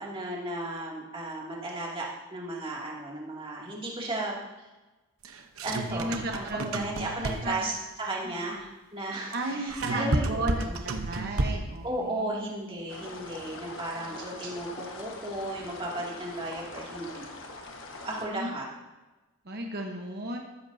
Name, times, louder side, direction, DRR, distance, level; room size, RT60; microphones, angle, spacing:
voice 1, 0.0-4.3 5.6-7.7 8.0-10.8 11.1-11.2 11.8-17.3 18.0-18.6, right 1 dB, 25° right, -4 dB, 2.5 m, -35 dB
sound 1, 5.2-7.7 9.3-11.8, right 2 dB, 70° right, 1.0 m, -31 dB
voice 2, 5.8-6.8 7.4-7.6 9.3-12.5 18.3-18.5 19.4-20.4, right 1 dB, 45° right, 1 dB, 1.1 m, -34 dB
sound 2, 12.9-18.3, left 2 dB, 55° left, 1.4 m, -43 dB
14.5 x 13.5 x 2.8 m, 1.1 s
head